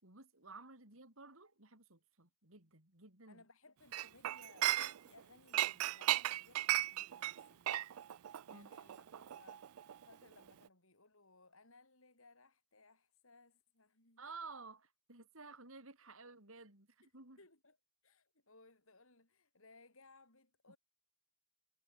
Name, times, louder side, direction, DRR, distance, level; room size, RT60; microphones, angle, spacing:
voice 1, 0.0-3.4 8.5-8.7 14.2-17.4 20.7-20.8, right 4 dB, 65° right, 4.7 m, -54 dB
voice 2, 3.3-7.7 8.5-9.8 10.0-14.2 17.0-17.1 17.4-17.8 18.0-20.8, left 3 dB, 65° left, 7.3 m, -64 dB
Chink clink, 3.9-5.2 5.5-10.1 10.4-10.7, right 14 dB, 80° right, 0.4 m, -36 dB
head